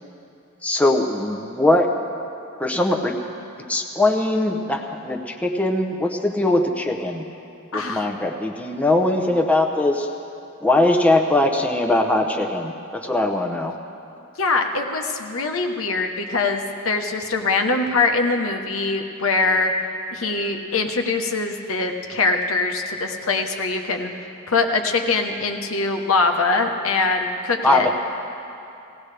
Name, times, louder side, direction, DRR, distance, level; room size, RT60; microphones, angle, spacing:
voice 1, 0.6-1.9 2.6-3.2 3.7-7.2 7.7-10.1 10.6-13.7 27.6-27.9, left 2 dB, 5° left, 2 dB, 0.7 m, -21 dB
voice 2, 7.7-8.1 14.4-19.7 20.1-24.1 24.5-27.9, left 3 dB, 80° left, 4 dB, 1.1 m, -23 dB
18.0 x 17.5 x 3.4 m, 2.7 s
head